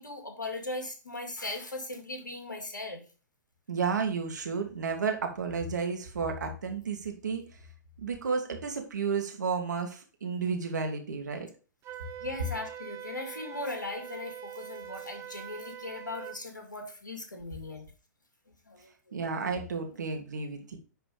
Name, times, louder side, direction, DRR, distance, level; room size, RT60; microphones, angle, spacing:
voice 1, 0.0-3.0 12.2-17.8 18.7-19.1, left 2 dB, 85° left, 4 dB, 2.3 m, -39 dB
voice 2, 3.7-7.5 8.0-11.5 19.1-20.8, right 5 dB, 70° right, 3 dB, 2.1 m, -32 dB
Wind instrument woodwind instrument, 11.8-16.4, right 9 dB, 25° right, 1.2 m, -43 dB
10.0 x 4.0 x 5.1 m, 0.37 s
figure-of-eight pair, 115°, 10 cm